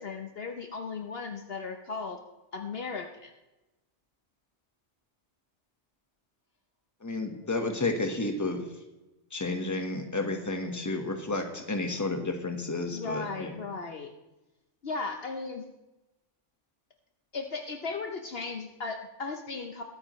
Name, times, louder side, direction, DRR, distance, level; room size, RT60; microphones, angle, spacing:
voice 1, 0.0-2.2 2.5-3.3 12.9-14.1 14.8-15.6 17.3-19.8, left 4 dB, 55° left, 5 dB, 1.0 m, -36 dB
voice 2, 7.0-8.6 9.3-13.5, left 2 dB, 15° left, 4 dB, 1.2 m, -31 dB
22.5 x 8.9 x 3.1 m, 1.0 s
omnidirectional pair, 1.3 m